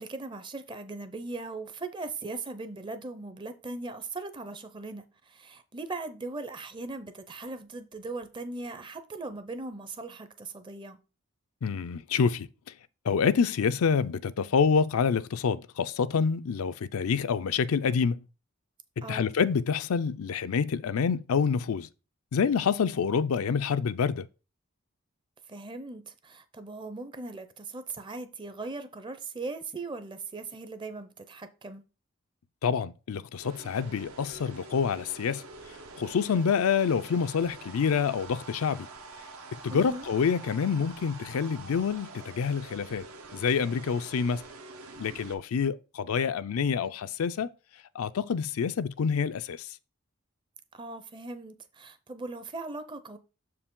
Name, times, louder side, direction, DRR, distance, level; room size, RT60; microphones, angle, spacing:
voice 1, 0.0-11.0 19.0-19.3 25.5-31.8 39.7-40.1 50.7-53.2, right 3 dB, 20° right, 0.5 m, -39 dB
voice 2, 11.6-12.5 13.0-18.2 19.0-21.9 22.3-24.3 32.6-35.4 36.0-38.9 39.6-43.0 43.3-44.5 45.0-47.5 47.9-49.8, left 6 dB, 80° left, 0.4 m, -27 dB
sound 1, 33.3-45.3, right 3 dB, 85° right, 1.1 m, -46 dB
6.7 x 4.8 x 3.7 m
head